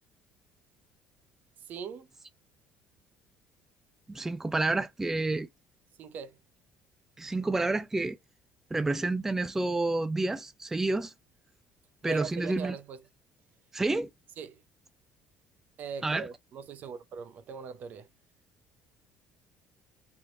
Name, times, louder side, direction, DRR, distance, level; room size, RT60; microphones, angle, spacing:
voice 1, 1.7-2.1 6.0-6.4 12.0-13.0 14.4-14.6 15.8-18.1, right 6 dB, 55° right, 0.6 m, -40 dB
voice 2, 4.1-5.5 7.2-8.2 8.7-11.1 12.0-12.8 13.7-14.1 16.0-16.3, right 2 dB, 10° right, 0.3 m, -29 dB
3.5 x 2.9 x 2.5 m
cardioid pair, 105°, 3 cm